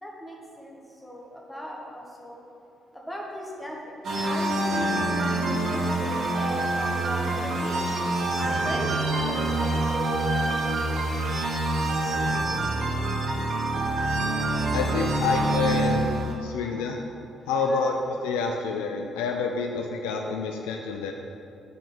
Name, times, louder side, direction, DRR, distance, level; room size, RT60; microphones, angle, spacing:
voice 1, 0.0-2.4 3.1-3.8 4.2-7.8 8.4-11.1 16.6-16.9 17.6-17.8, equal, 10° left, -2 dB, 1.3 m, -37 dB
sound 1, 4.0-16.3, right 2 dB, 50° right, 0.9 m, -26 dB
voice 2, 14.7-17.0 17.5-21.1, left 4 dB, 65° left, 3 dB, 0.3 m, -28 dB
5.2 x 4.6 x 5.5 m, 2.8 s
figure-of-eight pair, 45°, 0 cm